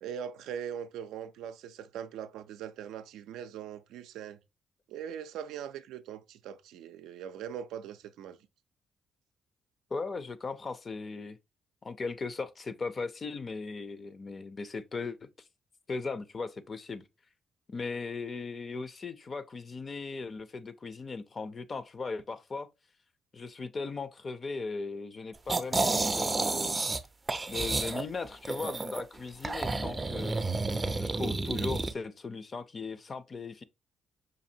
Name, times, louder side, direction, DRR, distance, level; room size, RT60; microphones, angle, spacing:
voice 1, 0.0-4.4 4.9-8.4, right 9 dB, 90° right, 0.3 m, -41 dB
voice 2, 9.9-11.4 11.8-15.3 15.9-17.0 17.7-22.7 23.3-26.8 27.4-30.4 31.0-33.6, left 4 dB, 35° left, 0.4 m, -38 dB
sound 1, 25.5-27.0 27.3-29.0 29.4-31.9, right 3 dB, 25° right, 0.4 m, -30 dB
5.1 x 2.6 x 2.6 m
cardioid pair, 90°, 0 cm